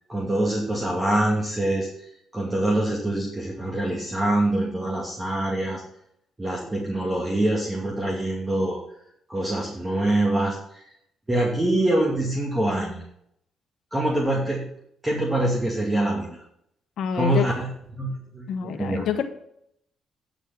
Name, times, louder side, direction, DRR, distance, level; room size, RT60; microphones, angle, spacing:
voice 1, 0.1-1.9 2.3-5.8 6.4-8.8 9.3-10.8 11.3-13.0 13.9-14.7 15.0-16.4 17.1-17.7 17.9-19.1, right 1 dB, 20° right, -2 dB, 2.5 m, -25 dB
voice 2, 17.0-17.5 18.5-19.2, left 8 dB, 70° left, 8 dB, 1.1 m, -27 dB
9.8 x 6.8 x 5.9 m, 0.72 s
cardioid pair, 90°, 0 cm